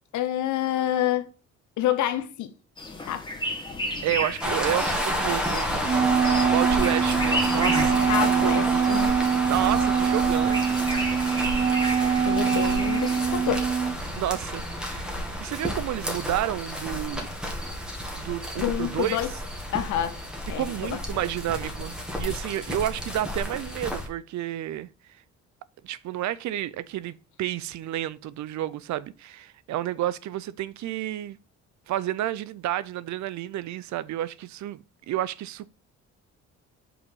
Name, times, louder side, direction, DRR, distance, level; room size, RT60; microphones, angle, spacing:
voice 1, 0.1-1.3 1.8-2.5 3.1-3.3 8.1-9.1 12.3-13.7 18.6-19.3 19.7-20.2 20.5-20.6 20.9-21.0, left 12 dB, 75° left, 0.9 m, -27 dB
sound 1, 2.8-13.6, equal, 15° left, 2.0 m, -34 dB
voice 2, 4.0-8.8 9.5-10.6 14.2-17.3 18.1-19.2 20.6-24.9 25.8-31.4 31.9-35.7, right 13 dB, 70° right, 0.5 m, -31 dB
sound 2, 4.4-24.1, equal, 5° right, 1.8 m, -31 dB
Wind instrument woodwind instrument, 5.8-14.0, right 7 dB, 25° right, 0.6 m, -24 dB
5.6 x 4.1 x 5.5 m
cardioid pair, 90°, 30 cm